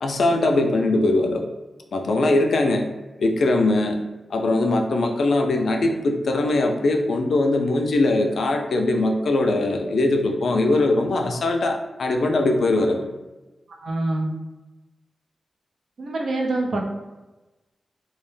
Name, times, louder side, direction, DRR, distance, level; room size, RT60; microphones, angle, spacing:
voice 1, 0.0-1.5 1.9-2.9 3.2-4.0 4.3-13.1, left 2 dB, 75° left, 3 dB, 0.3 m, -21 dB
voice 2, 13.7-14.3 16.0-16.8, right 2 dB, 75° right, 0 dB, 0.4 m, -25 dB
2.2 x 2.1 x 3.1 m, 1.1 s
wide cardioid pair, 115°, 0 cm